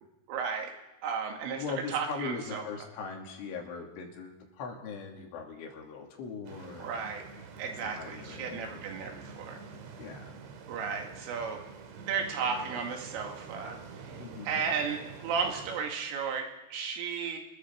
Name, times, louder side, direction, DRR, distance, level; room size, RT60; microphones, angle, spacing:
voice 1, 0.3-0.7 1.0-2.6 6.8-7.2 7.6-9.6 10.7-11.6 12.0-13.8 14.0-14.2 14.5-17.4, right 6 dB, 85° right, 3 dB, 4.8 m, -34 dB
voice 2, 1.6-6.9 7.8-9.2 10.0-10.3 14.2-14.7, left 5 dB, 75° left, 1 dB, 5.0 m, -40 dB
sound 1, 6.5-15.8, right 5 dB, 70° right, 4.1 m, -47 dB
28.0 x 21.5 x 4.7 m, 1.0 s
omnidirectional pair, 5.7 m